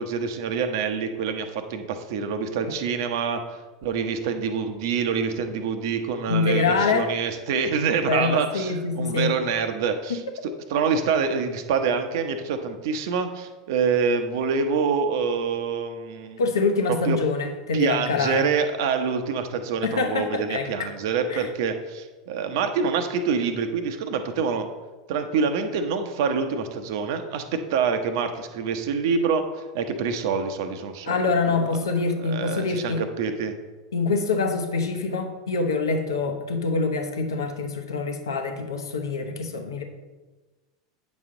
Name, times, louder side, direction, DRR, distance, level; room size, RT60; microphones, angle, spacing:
voice 1, 0.0-3.4 3.8-16.4 17.0-17.2 17.7-24.7 25.1-29.4 29.7-31.2 31.5-31.8 32.2-33.5, right 5 dB, 65° right, 7 dB, 0.9 m, -26 dB
voice 2, 6.3-7.1 8.1-9.3 16.4-18.5 19.8-20.9 21.3-21.5 31.1-33.0 33.9-39.8, left 4 dB, 80° left, 4 dB, 0.9 m, -25 dB
8.8 x 6.2 x 3.8 m, 1.2 s
hypercardioid pair, 85°, 2 cm